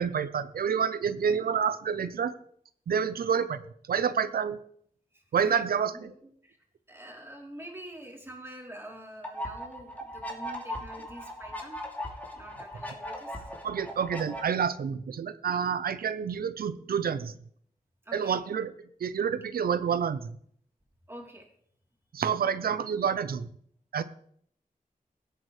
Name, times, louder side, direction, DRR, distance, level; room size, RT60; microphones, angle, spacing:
voice 1, 0.0-2.3 2.9-3.6 3.9-4.6 5.3-6.1 13.6-17.4 18.1-18.7 19.0-20.3 22.1-23.5 23.9-24.0, right 7 dB, 90° right, 14 dB, 0.7 m, -28 dB
voice 2, 5.1-5.6 5.9-6.6 6.9-11.8 12.3-13.5 18.1-18.4 21.1-21.5, right 1 dB, 15° right, -1 dB, 3.5 m, -46 dB
sound 1, 9.2-14.4, equal, 10° left, 2.7 m, -39 dB
16.5 x 8.6 x 3.3 m, 0.64 s
wide cardioid pair, 80°, 15 cm